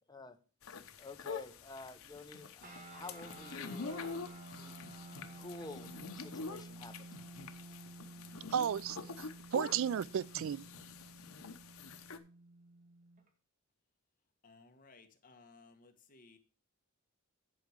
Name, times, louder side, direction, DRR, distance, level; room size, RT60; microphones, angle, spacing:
sound 1, 0.6-12.2, left 4 dB, 80° left, 0.9 m, -46 dB
voice 1, 1.0-2.7 2.9-4.3 4.6-4.9 5.4-5.9 6.2-7.1, left 3 dB, 20° left, 0.8 m, -50 dB
sound 2, 2.6-13.3, right 2 dB, 40° right, 1.9 m, -52 dB
voice 2, 8.5-10.7, right 8 dB, 65° right, 0.3 m, -34 dB
voice 3, 14.4-16.4, left 3 dB, 40° left, 1.5 m, -60 dB
10.0 x 4.8 x 6.4 m
head